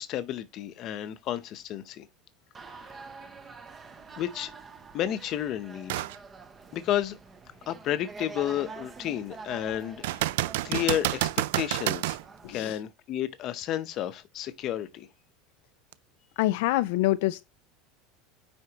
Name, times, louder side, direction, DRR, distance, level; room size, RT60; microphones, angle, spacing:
voice 1, 0.0-2.1 2.8-2.9 4.2-4.5 4.9-6.1 6.7-7.2 7.7-10.2 10.6-12.2 12.5-15.1, left 11 dB, 35° left, 0.7 m, -31 dB
sound 1, 2.5-12.6, right 4 dB, 15° right, 0.7 m, -46 dB
sound 2, 5.9-6.2 6.7-6.8 10.0-12.2 15.9-16.0, right 16 dB, 80° right, 0.4 m, -29 dB
voice 2, 12.4-12.8 16.4-17.4, left 16 dB, 65° left, 0.3 m, -26 dB
9.6 x 4.3 x 2.9 m
cardioid pair, 175°, 0 cm